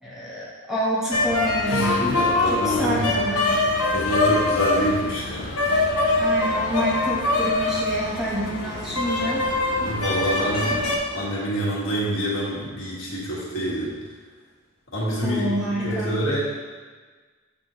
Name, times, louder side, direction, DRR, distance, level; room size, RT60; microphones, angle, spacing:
voice 1, 0.0-2.0 2.4-3.6 6.2-9.4 10.7-10.8 15.2-16.2, right 1 dB, ahead, -8 dB, 0.9 m, -28 dB
sound 1, 1.1-11.0, left 2 dB, 80° left, 0.8 m, -23 dB
voice 2, 1.7-3.1 3.9-5.5 9.8-10.8 11.1-14.0 14.9-15.5 15.8-16.4, equal, 60° left, -6 dB, 1.5 m, -26 dB
7.8 x 4.1 x 3.0 m, 1.4 s
head